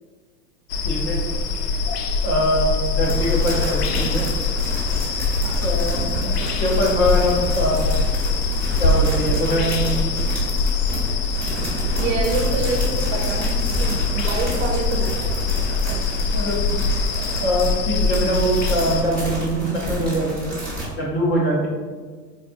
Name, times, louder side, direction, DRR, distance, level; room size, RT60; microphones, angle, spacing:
sound 1, 0.7-19.0, left 4 dB, 80° left, 0.6 m, -23 dB
voice 1, 0.8-1.2 2.2-2.7 2.9-4.3 5.6-7.9 8.8-10.3 16.3-16.6 17.4-20.5 21.0-21.7, equal, 25° left, -4 dB, 0.9 m, -23 dB
sound 2, 3.0-20.9, equal, 5° left, 1.4 m, -29 dB
voice 2, 12.0-16.0, right 4 dB, 55° right, 2 dB, 0.6 m, -28 dB
4.8 x 2.4 x 2.6 m, 1.5 s
hypercardioid pair, 125°, 47 cm